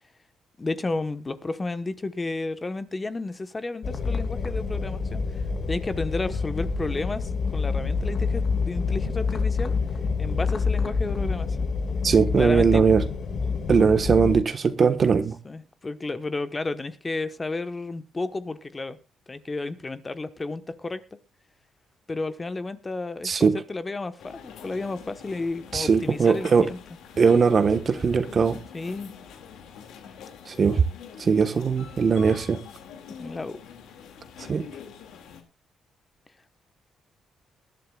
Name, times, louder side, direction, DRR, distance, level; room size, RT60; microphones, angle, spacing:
voice 1, 0.6-5.4 5.7-9.7 10.2-11.7 12.4-12.8 15.4-19.0 19.3-21.0 22.1-26.8 28.7-29.1 33.2-33.6, left 3 dB, 25° left, 1.1 m, -32 dB
sound 1, 3.8-14.4, left 4 dB, 55° left, 2.6 m, -27 dB
voice 2, 12.0-13.0 13.7-15.4 23.2-23.6 25.7-26.7 27.2-28.6 30.5-30.8 31.2-32.6 34.5-34.7, right 5 dB, 45° right, 1.3 m, -20 dB
sound 2, 24.2-35.4, left 7 dB, 85° left, 2.2 m, -45 dB
20.5 x 11.5 x 2.4 m
cardioid pair, 90°, 0 cm